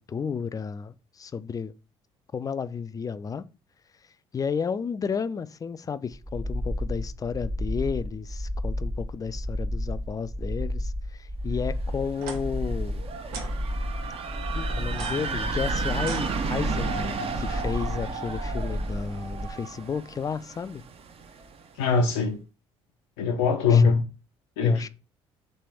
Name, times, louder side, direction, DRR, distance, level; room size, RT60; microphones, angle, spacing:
voice 1, 0.1-1.7 2.3-3.4 4.3-13.0 14.5-20.8 23.7-23.9 24.6-24.9, left 6 dB, 25° left, 0.4 m, -32 dB
sound 1, 6.1-19.5, equal, 10° right, 0.7 m, -32 dB
sound 2, 11.8-21.6, right 5 dB, 45° right, 0.7 m, -34 dB
sound 3, 12.1-12.4 13.3-13.5 14.9-16.9, right 4 dB, 75° right, 0.9 m, -40 dB
voice 2, 21.8-22.4 23.2-24.0 24.6-24.9, left 5 dB, 75° left, 0.6 m, -21 dB
3.3 x 3.3 x 4.4 m
hypercardioid pair, 55°, 14 cm